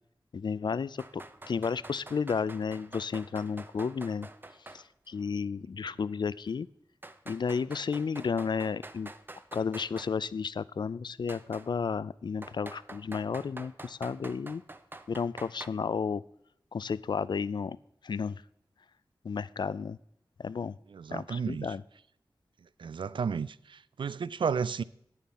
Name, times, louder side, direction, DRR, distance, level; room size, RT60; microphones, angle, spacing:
voice 1, 0.3-4.3 4.7-6.7 7.3-9.1 9.5-14.6 15.1-16.2 16.7-17.8 18.0-18.4 19.2-20.0 20.4-20.8 21.1-21.8, left 5 dB, 60° left, 0.4 m, -32 dB
sound 1, 1.0-4.9 5.1-5.2 6.1-6.2 7.0-10.1 11.3-11.7 12.4-15.7, right 2 dB, 25° right, 0.6 m, -47 dB
voice 2, 20.9-21.7 22.8-24.8, right 6 dB, 75° right, 0.4 m, -33 dB
10.5 x 9.3 x 4.2 m
wide cardioid pair, 90°, 8 cm